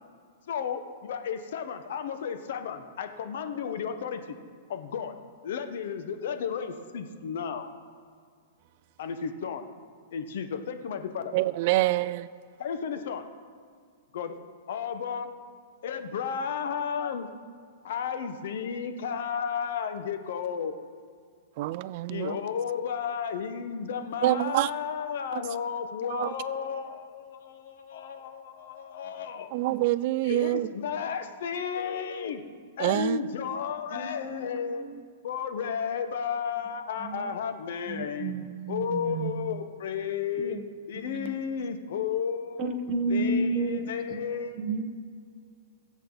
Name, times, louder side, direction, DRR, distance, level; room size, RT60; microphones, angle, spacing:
voice 1, 0.5-4.4 4.7-5.1 5.4-7.7 9.0-9.7 10.1-11.3 12.6-13.3 14.1-14.4 14.7-15.3 15.8-17.3 17.8-20.7 22.1-29.5 30.2-32.4 32.8-34.9 35.2-38.4 38.7-40.6 40.9-42.8 43.1-44.8, left 7 dB, 70° left, 7 dB, 1.3 m, -33 dB
voice 2, 11.3-12.3 21.6-22.3 24.2-24.7 25.3-25.4 26.1-26.3 29.5-30.7 32.8-33.2, right 16 dB, 50° right, 16 dB, 0.3 m, -26 dB
voice 3, 34.0-34.5 37.9-39.3 40.4-40.6 41.1-41.3 42.6-43.8 44.1-44.2 44.6-44.8, right 2 dB, 30° right, 4 dB, 1.4 m, -30 dB
22.5 x 8.0 x 4.1 m, 2.1 s
hypercardioid pair, 145°, 0 cm